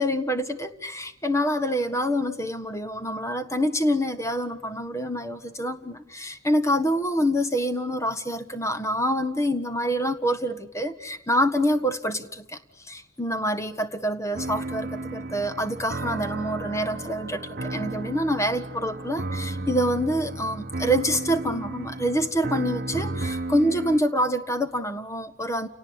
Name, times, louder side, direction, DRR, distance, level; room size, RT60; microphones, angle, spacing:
voice 1, 0.0-25.7, equal, 15° left, 8 dB, 1.5 m, -26 dB
sound 1, 14.4-24.0, right 2 dB, 50° right, 1.0 m, -33 dB
29.5 x 18.5 x 9.6 m, 0.81 s
head